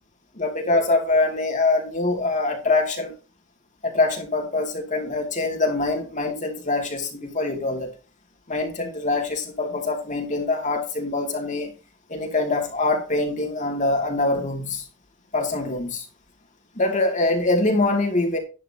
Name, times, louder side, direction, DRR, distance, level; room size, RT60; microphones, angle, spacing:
voice 1, 0.3-3.1 3.8-7.9 8.5-11.7 12.1-14.9 15.3-16.1 16.7-18.4, left 2 dB, 40° left, 2.6 m, -24 dB
11.5 x 9.2 x 2.9 m
head